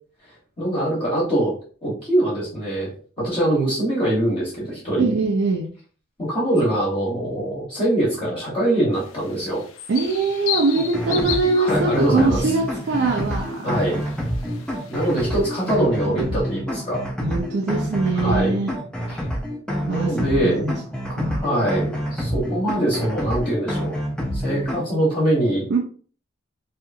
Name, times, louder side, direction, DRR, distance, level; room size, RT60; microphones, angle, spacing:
voice 1, 0.6-1.5 1.8-5.1 6.2-9.6 11.1-11.3 11.6-12.4 13.6-14.0 14.9-17.0 18.2-18.5 19.1-19.2 19.9-20.6 21.4-23.9 24.3-25.7, right 1 dB, 25° left, -6 dB, 0.9 m, -23 dB
voice 2, 5.0-5.7 9.9-14.0 15.9-16.2 17.2-18.8 19.9-20.8 21.1-21.7 25.7-25.8, right 3 dB, 55° right, 0 dB, 0.4 m, -23 dB
sound 1, 8.9-15.7, left 9 dB, 85° left, 0.4 m, -35 dB
sound 2, 10.7-24.9, equal, 5° left, 0.4 m, -27 dB
2.8 x 2.4 x 2.4 m, 0.42 s
head